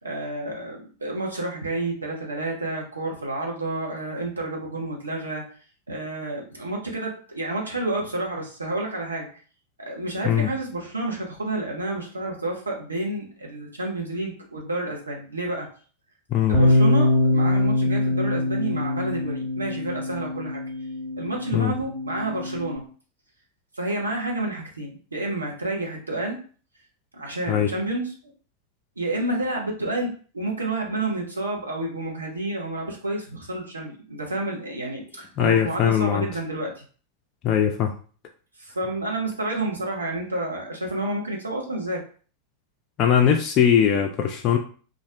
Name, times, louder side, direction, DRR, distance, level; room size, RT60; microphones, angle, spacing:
voice 1, 0.0-5.4 5.9-9.3 9.8-15.7 16.5-20.6 21.2-22.8 23.7-26.4 27.1-28.1 29.0-36.8 38.6-42.0, right 2 dB, 80° right, -1 dB, 0.8 m, -30 dB
Bass guitar, 16.5-22.8, left 1 dB, 40° right, 0.9 m, -23 dB
voice 2, 35.4-36.3 37.4-37.9 43.0-44.6, left 8 dB, 35° left, 2 dB, 0.3 m, -20 dB
2.5 x 2.0 x 3.4 m, 0.41 s
figure-of-eight pair, 90°, 0 cm